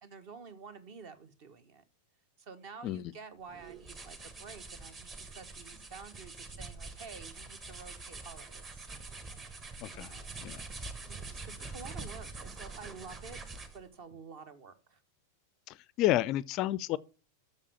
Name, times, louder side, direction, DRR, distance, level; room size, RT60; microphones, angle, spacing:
voice 1, 0.0-1.8 2.4-8.9 9.9-10.3 11.1-15.0, right 5 dB, 45° right, 1.3 m, -50 dB
sound 1, 3.5-13.9, right 3 dB, 25° right, 1.4 m, -45 dB
voice 2, 16.0-17.0, left 15 dB, 40° left, 0.4 m, -30 dB
7.3 x 6.6 x 7.0 m
figure-of-eight pair, 90°, 0 cm